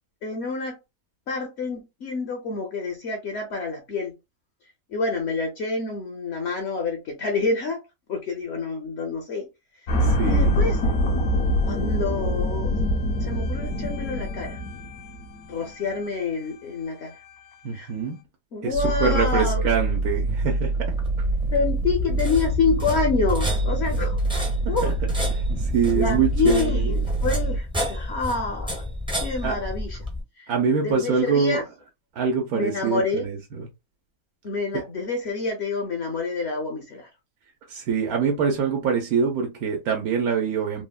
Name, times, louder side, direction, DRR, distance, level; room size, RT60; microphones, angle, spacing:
voice 1, 0.2-0.8 1.3-4.2 4.9-7.8 8.1-9.5 10.2-10.8 11.7-12.8 13.2-14.6 15.5-17.2 17.7-17.9 18.5-19.7 21.5-24.9 25.9-28.8 29.2-30.0 30.4-30.5 30.8-31.6 32.5-33.3 34.4-37.1, left 4 dB, 60° left, 0.7 m, -27 dB
sound 1, 9.9-16.1 16.4-16.5, equal, 80° left, 1.1 m, -24 dB
voice 2, 10.0-10.5 17.6-18.2 18.6-21.3 24.7-24.9 25.3-26.9 29.4-29.6 30.5-31.6 32.1-33.7 37.7-40.8, right 6 dB, 90° right, 1.2 m, -25 dB
sound 2, 18.7-27.6, right 2 dB, 55° right, 0.8 m, -25 dB
sound 3, 20.9-30.2, equal, 5° right, 0.4 m, -31 dB
3.2 x 2.0 x 2.3 m
omnidirectional pair, 1.5 m